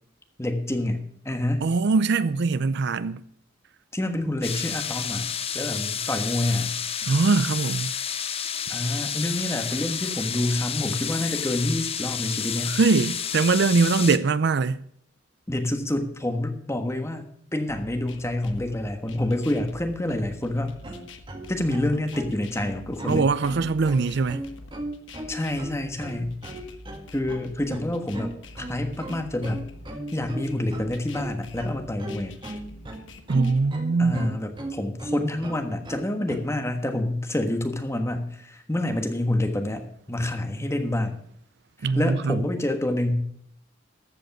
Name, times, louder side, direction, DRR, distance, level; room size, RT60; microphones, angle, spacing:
voice 1, 0.4-1.7 3.9-5.3 5.5-6.8 8.7-12.8 15.5-17.3 17.5-20.8 21.5-23.3 25.3-26.4 27.1-29.7 30.1-32.3 34.0-41.2 41.9-43.2, left 1 dB, 15° left, 1.3 m, -27 dB
voice 2, 1.6-3.2 7.0-7.9 12.7-14.8 23.1-24.4 33.3-34.3 41.8-42.4, right 4 dB, 60° right, 0.5 m, -22 dB
sound 1, 4.4-14.2, left 8 dB, 30° left, 0.6 m, -30 dB
sound 2, 17.7-33.7, left 2 dB, 70° left, 1.1 m, -46 dB
sound 3, 20.8-36.4, right 1 dB, 25° right, 1.7 m, -36 dB
14.0 x 5.2 x 7.8 m
head